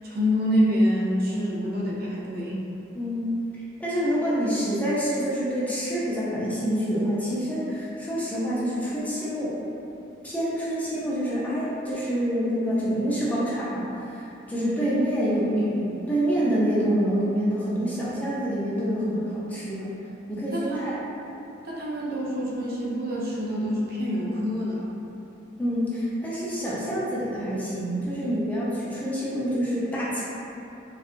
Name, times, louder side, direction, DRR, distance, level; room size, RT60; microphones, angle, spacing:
voice 1, 0.0-2.6 20.5-21.0 21.6-24.9, equal, 50° right, -5 dB, 0.6 m, -26 dB
voice 2, 2.9-3.4 3.8-9.5 10.2-19.9 20.3-21.0 25.6-30.2, equal, 10° left, -8 dB, 0.5 m, -27 dB
4.4 x 2.3 x 2.5 m, 2.9 s
head